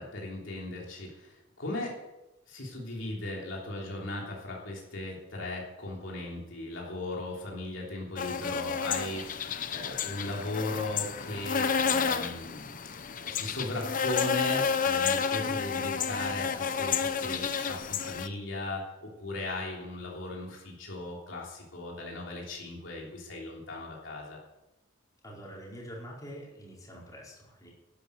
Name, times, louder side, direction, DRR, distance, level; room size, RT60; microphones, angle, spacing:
voice 1, 0.0-1.9 2.5-9.2 9.7-24.4, left 2 dB, 65° left, -2 dB, 3.4 m, -37 dB
sound 1, 8.2-18.3, left 6 dB, 40° left, 0.8 m, -31 dB
voice 2, 25.2-27.7, equal, 15° left, -4 dB, 4.7 m, -45 dB
12.0 x 11.5 x 8.1 m, 0.99 s
head